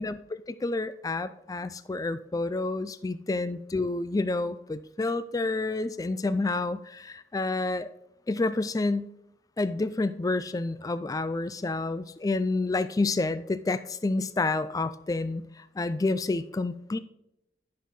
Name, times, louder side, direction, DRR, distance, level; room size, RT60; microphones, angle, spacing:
voice 1, 0.0-7.9 8.3-9.1 9.6-17.0, left 3 dB, 20° left, 13 dB, 0.3 m, -29 dB
10.5 x 6.3 x 3.9 m, 0.83 s
head